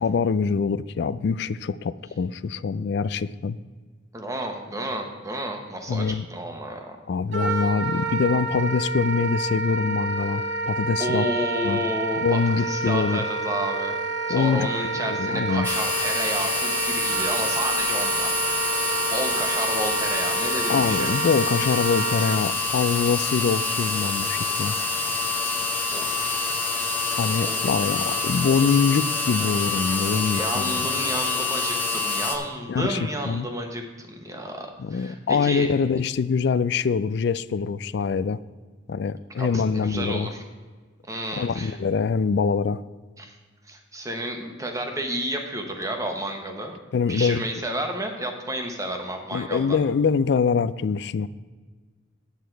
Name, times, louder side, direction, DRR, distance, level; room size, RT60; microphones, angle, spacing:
voice 1, 0.0-3.6 5.9-6.3 7.1-11.3 11.6-11.8 12.2-13.2 14.3-14.7 15.0-15.7 20.7-24.8 27.2-30.8 32.7-33.0 33.3-33.5 34.8-38.4 38.9-40.3 41.4-42.8 46.9-47.4 49.3-51.3, left 5 dB, 55° left, 16 dB, 0.3 m, -24 dB
voice 2, 4.1-7.0 11.0-13.9 14.3-18.3 19.1-21.1 25.9-26.4 27.4-27.6 30.3-35.7 39.4-40.4 41.1-41.8 43.2-43.4 43.6-46.8 47.1-49.8, right 1 dB, 15° right, 3 dB, 1.0 m, -31 dB
Wind instrument woodwind instrument, 7.3-22.4, right 3 dB, 65° right, 0.9 m, -29 dB
sound 1, 15.6-32.4, left 3 dB, 10° left, 0.9 m, -26 dB
9.9 x 8.3 x 4.5 m, 1.4 s
head